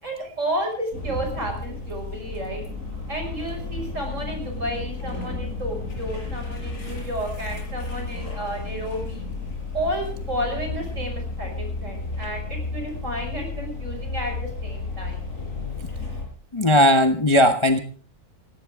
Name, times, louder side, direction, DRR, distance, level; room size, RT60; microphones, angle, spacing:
voice 1, 0.0-2.6 3.1-9.2 9.7-15.2, right 1 dB, 50° right, 3 dB, 6.4 m, -31 dB
sound 1, 0.9-16.3, left 3 dB, 55° left, 5.7 m, -32 dB
voice 2, 16.5-17.8, left 1 dB, 20° left, 6 dB, 0.9 m, -17 dB
18.0 x 17.5 x 3.7 m, 0.41 s
omnidirectional pair, 1.6 m